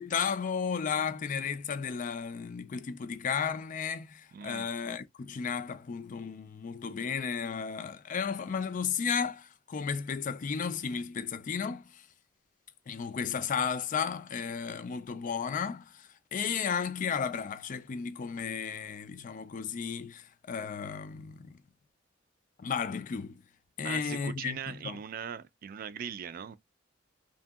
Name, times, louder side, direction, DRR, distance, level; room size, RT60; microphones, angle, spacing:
voice 1, 0.0-12.0 12.9-15.9 16.3-21.6 22.6-23.4 23.8-25.0, left 6 dB, 45° left, 0.4 m, -34 dB
voice 2, 4.3-4.7 23.8-26.6, right 7 dB, 50° right, 0.3 m, -40 dB
2.7 x 2.6 x 2.3 m
head